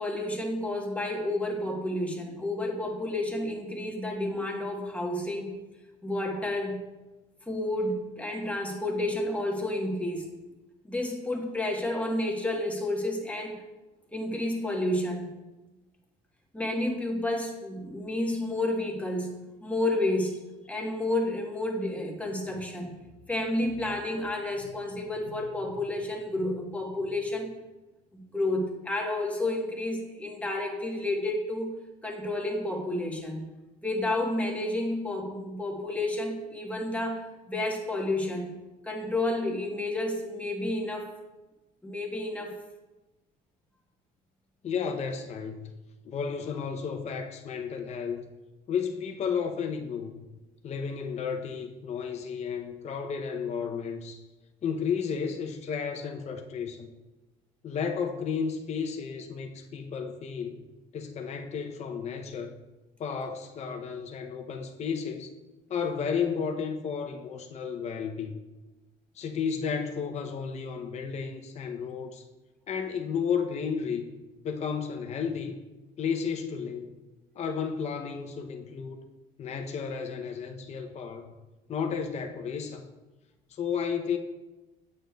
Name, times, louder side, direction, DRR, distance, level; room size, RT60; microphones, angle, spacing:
voice 1, 0.0-5.5 6.0-6.8 7.5-10.2 10.8-13.6 14.1-15.3 16.5-19.3 19.6-20.4 20.7-22.9 23.3-27.5 28.1-31.8 32.0-33.5 33.8-38.5 38.8-41.1 41.8-42.5, left 1 dB, 10° left, 1 dB, 1.1 m, -30 dB
voice 2, 44.6-45.7 46.1-48.2 48.7-50.2 50.6-54.2 54.6-56.9 57.6-60.6 60.9-62.6 63.0-65.3 65.7-68.4 69.2-72.2 72.7-74.1 74.4-75.6 76.0-76.9 77.4-79.0 79.4-81.3 81.7-82.8 83.5-84.2, left 6 dB, 40° left, 4 dB, 0.6 m, -32 dB
8.6 x 6.4 x 2.3 m, 1.1 s
cardioid pair, 110°, 17 cm